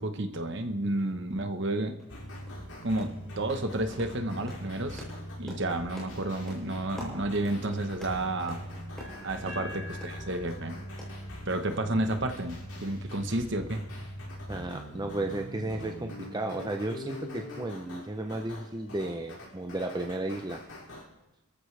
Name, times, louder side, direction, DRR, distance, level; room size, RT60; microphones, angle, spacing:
voice 1, 0.0-2.0 2.8-5.0 5.4-8.7 9.2-10.8 11.5-13.8, right 2 dB, 55° right, 7 dB, 1.1 m, -31 dB
sound 1, 2.0-2.2 2.4-2.7 3.0-3.2 3.5-10.6 11.0-11.8 12.0-12.1 12.5-12.6, left 1 dB, ahead, 6.9 m, -48 dB
sound 2, 2.1-21.0, equal, 70° left, 5.8 m, -42 dB
sound 3, 9.0-12.9, left 1 dB, 35° right, 3.5 m, -48 dB
voice 2, 9.4-9.9 13.0-13.1 14.5-20.6, right 2 dB, 20° right, 4 dB, 0.7 m, -34 dB
29.5 x 14.0 x 3.4 m, 0.97 s
head